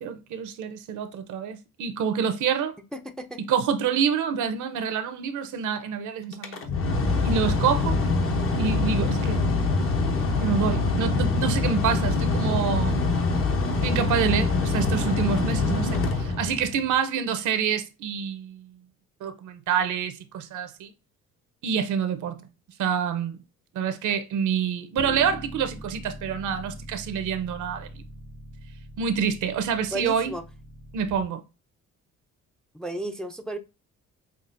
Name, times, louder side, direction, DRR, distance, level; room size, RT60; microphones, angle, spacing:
voice 1, 0.0-2.7 3.4-6.6 7.2-8.0 8.6-9.4 10.4-13.1 13.8-18.7 19.2-20.9 21.6-22.4 22.8-23.4 23.7-28.0 29.0-30.3 30.9-31.4, right 7 dB, 75° right, 0.7 m, -27 dB
voice 2, 2.9-3.4 29.9-30.4 32.7-33.6, right 1 dB, ahead, 0.4 m, -33 dB
Mechanical fan, 6.3-16.9, left 3 dB, 45° left, 0.9 m, -24 dB
Bass guitar, 25.0-31.2, equal, 70° left, 1.7 m, -42 dB
5.9 x 2.4 x 2.5 m
cardioid pair, 90°, 30 cm